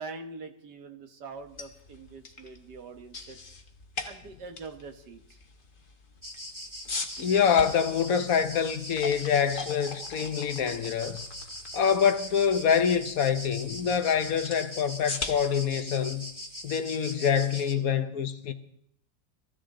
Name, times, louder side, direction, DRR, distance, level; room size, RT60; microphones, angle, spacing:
voice 1, 0.0-3.4 4.0-5.4, right 4 dB, 70° right, 2.0 m, -43 dB
sound 1, 1.4-17.3, left 3 dB, 30° left, 1.3 m, -42 dB
sound 2, 6.2-17.7, equal, 10° right, 1.5 m, -41 dB
voice 2, 7.2-11.2 11.7-16.3 16.6-18.5, left 7 dB, 55° left, 1.3 m, -25 dB
22.5 x 15.0 x 3.8 m
omnidirectional pair, 1.9 m